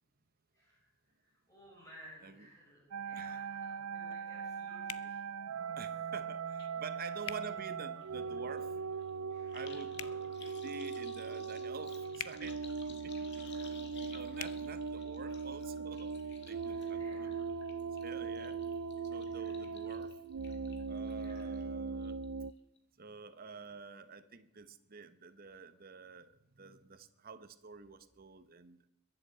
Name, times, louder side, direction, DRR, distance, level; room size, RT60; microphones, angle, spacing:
voice 1, 0.5-5.2 7.1-7.3 9.3-9.7 10.0-10.6 13.3-14.8 16.6-17.5 19.2-19.8 21.1-21.5 23.5-23.7 25.5-25.6, equal, 15° left, -4 dB, 6.4 m, -59 dB
sound 1, 2.9-22.5, right 5 dB, 75° right, 0.5 m, -40 dB
sound 2, 4.9-5.1 7.2-7.4 9.9-10.2 12.1-12.4 14.3-14.5, left 12 dB, 75° left, 0.6 m, -42 dB
voice 2, 5.8-9.1 9.5-10.0 10.6-12.6 12.9-13.4 14.0-17.3 18.0-18.6 19.0-20.1 20.9-22.2 23.0-28.8, right 4 dB, 45° right, 11 dB, 1.0 m, -49 dB
sound 3, 6.6-6.7 7.0-21.6 22.0-22.5 22.8-22.9, left 5 dB, 55° left, 1.8 m, -57 dB
21.5 x 8.0 x 7.8 m, 0.83 s
head